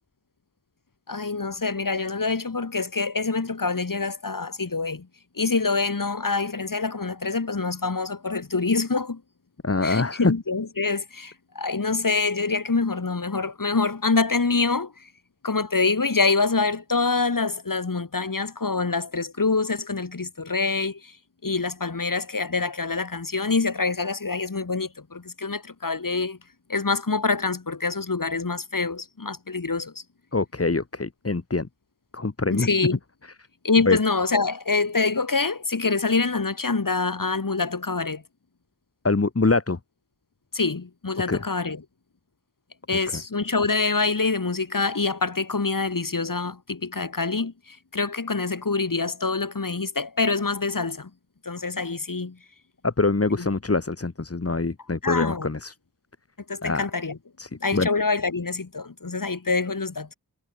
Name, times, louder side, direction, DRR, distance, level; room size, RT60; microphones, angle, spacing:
voice 1, 1.1-5.1 5.3-9.2 9.8-15.1 15.4-21.2 21.4-26.4 26.7-30.0 32.5-33.0 33.6-38.2 40.5-41.8 42.9-51.1 51.4-52.4 53.4-53.5 55.0-55.5 56.5-57.2 57.6-60.1, left 4 dB, 55° left, 3.0 m, -25 dB
voice 2, 9.6-10.2 30.3-31.7 32.1-32.7 33.9-34.0 39.0-39.8 41.3-41.4 52.8-55.7 56.6-56.8 57.4-57.9, left 3 dB, 35° left, 1.9 m, -24 dB
wide cardioid pair, 45°, 39 cm